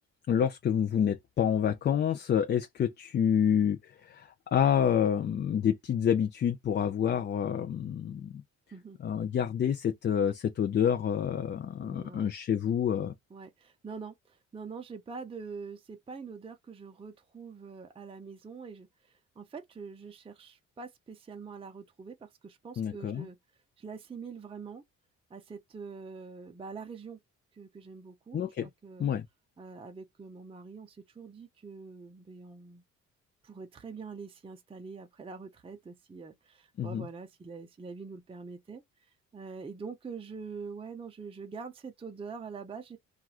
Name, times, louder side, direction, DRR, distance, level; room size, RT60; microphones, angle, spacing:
voice 1, 0.3-8.4 9.0-13.1 22.8-23.3 28.3-28.7 29.0-29.3 36.8-37.1, left 8 dB, 35° left, 0.4 m, -28 dB
voice 2, 11.8-12.3 13.3-23.4 23.8-24.8 25.3-27.2 27.5-29.1 29.6-32.8 33.4-43.0, right 5 dB, 20° right, 0.5 m, -44 dB
3.0 x 2.4 x 2.3 m
cardioid pair, 90°, 30 cm